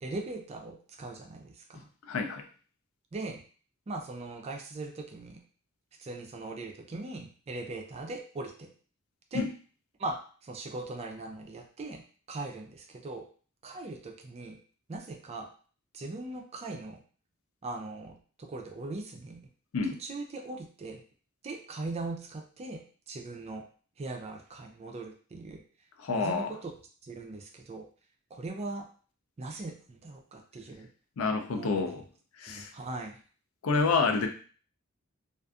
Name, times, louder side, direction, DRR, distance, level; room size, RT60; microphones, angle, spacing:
voice 1, 0.0-1.9 3.1-3.4 3.9-5.4 6.0-8.7 9.3-9.4 10.0-12.0 12.3-13.3 13.6-14.6 14.9-15.5 15.9-17.0 17.6-19.4 20.0-21.0 21.4-22.8 23.1-23.7 24.0-25.6 26.1-26.7 27.0-27.9 28.3-28.9 29.4-30.9 31.5-31.9 32.5-33.2, right 2 dB, 30° right, 3 dB, 0.4 m, -40 dB
voice 2, 2.1-2.4 9.3-9.5 19.7-20.0 26.0-26.5 31.2-32.0 32.4-32.7 33.6-34.3, left 4 dB, 70° left, 5 dB, 0.4 m, -28 dB
2.5 x 2.4 x 2.3 m, 0.40 s
head